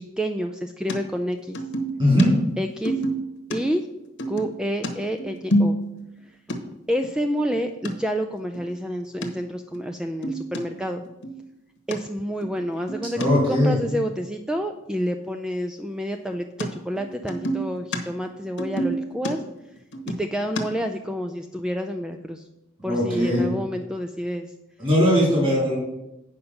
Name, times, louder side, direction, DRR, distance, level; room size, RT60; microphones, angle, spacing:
voice 1, 0.0-1.6 2.6-2.9 3.5-3.9 4.3-5.8 6.9-11.0 11.9-13.2 13.5-19.4 20.1-22.4 22.8-24.5, equal, 5° right, 5 dB, 0.3 m, -29 dB
sound 1, 0.9-1.0 1.5-2.3 2.8-3.6 4.2-6.2 6.5-6.6 7.0-7.1 7.4-7.9 8.4-8.7 9.2-9.3 9.7-9.8 10.1-10.6 11.0-11.4 11.9-12.0 12.4-13.3 16.6-16.7 17.0-18.0 18.3-20.6, right 1 dB, 60° left, 1.1 m, -27 dB
voice 2, 2.0-2.3 13.1-13.7 22.8-23.5 24.8-25.8, equal, 25° right, -5 dB, 3.7 m, -19 dB
8.6 x 5.3 x 5.7 m, 0.91 s
head